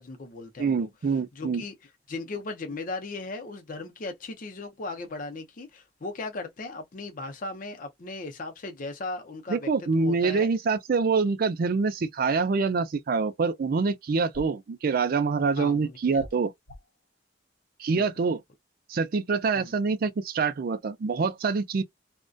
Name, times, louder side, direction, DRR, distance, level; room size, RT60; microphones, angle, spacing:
voice 1, 0.0-0.9 1.3-1.7 2.1-9.7 10.0-10.5 15.6-16.2 17.9-18.1 19.5-19.8, left 3 dB, 45° left, 0.6 m, -37 dB
voice 2, 0.6-1.6 9.5-16.5 17.8-18.4 18.9-21.8, right 4 dB, 50° right, 0.4 m, -25 dB
sound 1, 14.3-14.6 16.1-17.0, equal, 80° left, 0.8 m, -44 dB
2.3 x 2.2 x 2.5 m
head